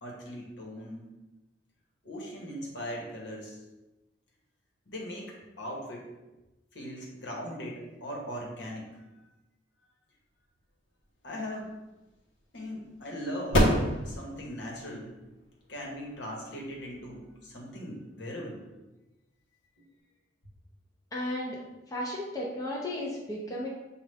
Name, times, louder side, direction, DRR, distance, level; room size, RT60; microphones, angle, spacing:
voice 1, 0.0-1.1 2.0-3.6 4.9-6.1 6.7-9.0 11.2-11.7 12.5-15.1 15.7-18.6, equal, 65° left, -1 dB, 1.1 m, -39 dB
sound 1, 10.9-18.2, equal, 85° left, 0.9 m, -32 dB
voice 2, 21.1-21.6 21.9-23.7, left 1 dB, 20° left, -4 dB, 0.6 m, -34 dB
6.4 x 2.4 x 3.3 m, 1.0 s
head